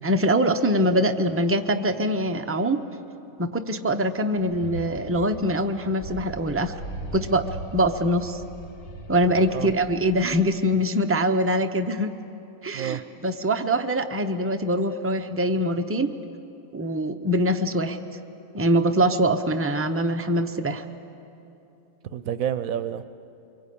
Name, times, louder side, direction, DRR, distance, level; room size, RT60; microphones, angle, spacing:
voice 1, 0.0-2.8 3.4-6.7 7.1-7.4 7.7-8.4 9.1-12.1 12.6-16.2 16.7-18.0 18.5-20.8, equal, 15° right, 6 dB, 0.4 m, -23 dB
sound 1, 4.5-10.7, right 2 dB, 55° left, 2.0 m, -39 dB
voice 2, 22.1-23.1, right 9 dB, 60° right, 12 dB, 1.1 m, -29 dB
24.5 x 23.5 x 8.6 m, 2.8 s
omnidirectional pair, 1.8 m